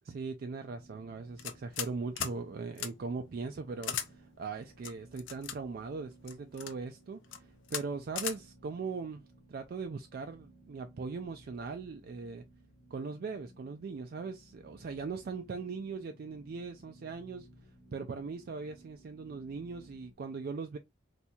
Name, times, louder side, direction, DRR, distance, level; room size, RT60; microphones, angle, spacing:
voice 1, 0.0-12.5 12.9-17.5 17.9-20.8, right 4 dB, 50° right, 0.3 m, -40 dB
sound 1, 0.6-20.1, right 1 dB, 55° left, 0.9 m, -59 dB
sound 2, 1.4-1.9 2.2-2.4 2.8-2.9 3.8-4.1 4.8-5.6 6.3-6.7 7.2-7.4 7.7-7.8 8.2-8.4, left 9 dB, 85° left, 0.6 m, -37 dB
4.2 x 2.7 x 2.3 m
head